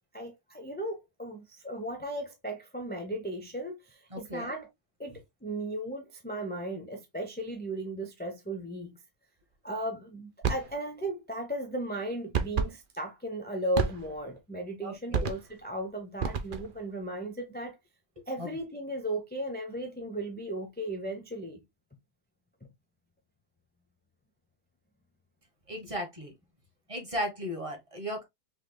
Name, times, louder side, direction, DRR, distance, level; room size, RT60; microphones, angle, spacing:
voice 1, 0.0-4.7 5.0-9.0 9.6-17.8 18.3-21.6, right 1 dB, 10° left, 0.5 m, -36 dB
voice 2, 4.1-4.5 14.8-15.3 18.4-18.5 25.7-26.3 26.9-28.2, equal, 25° right, 1.2 m, -36 dB
sound 1, 10.4-10.7 12.3-12.8 13.7-14.3 15.1-15.6 16.2-16.8, right 6 dB, 50° right, 0.6 m, -30 dB
5.7 x 3.3 x 2.2 m
omnidirectional pair, 1.7 m